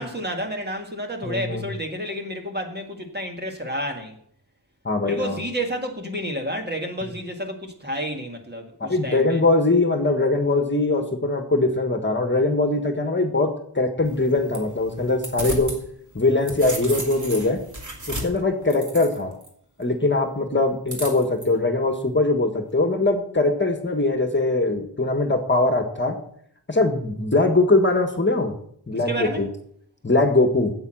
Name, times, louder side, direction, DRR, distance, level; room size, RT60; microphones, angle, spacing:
voice 1, 0.0-4.2 5.0-9.4 29.1-29.4, equal, 25° right, 1.9 m, -30 dB
voice 2, 1.2-1.6 4.8-5.4 8.8-15.7 16.1-17.6 18.1-19.3 19.8-26.2 26.7-28.5 28.9-29.5 30.0-30.7, left 2 dB, 25° left, 1.6 m, -21 dB
sound 1, 14.0-15.8 16.2-19.5 20.9-21.5, right 1 dB, 45° right, 2.8 m, -34 dB
8.9 x 8.3 x 7.7 m
wide cardioid pair, 105°, 41 cm